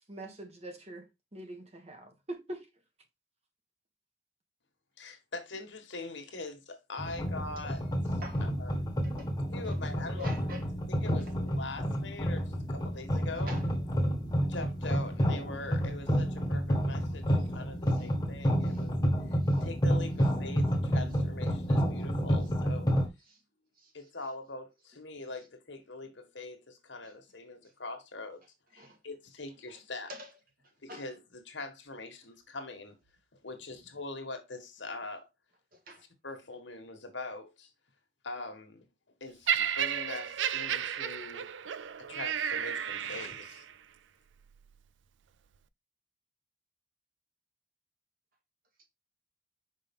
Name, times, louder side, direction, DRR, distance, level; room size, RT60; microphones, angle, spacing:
voice 1, 0.1-1.1 1.3-2.7, right 1 dB, 35° right, 1.5 m, -43 dB
voice 2, 5.0-8.9 9.5-10.3 10.9-13.5 14.4-18.9 19.3-22.9 23.9-28.4 28.7-30.1 30.8-33.0 33.4-35.3 36.2-37.7 38.2-38.9 39.2-43.6, left 3 dB, 70° left, 1.6 m, -43 dB
sound 1, 7.0-23.1, equal, 20° left, 1.4 m, -30 dB
voice 3, 10.2-10.6 11.2-11.3 13.4-13.7 17.0-17.1 17.4-17.5 17.9-18.1 18.6-18.9 19.4-19.6 23.3-23.4 23.8-23.9 27.0-27.1 27.6-27.7 28.8-29.0 30.1-30.3 30.9-31.0 35.7-36.0, equal, 50° right, 2.1 m, -46 dB
Laughter, 39.5-43.7 44.5-44.7, right 9 dB, 75° right, 0.4 m, -33 dB
5.5 x 5.2 x 3.6 m
head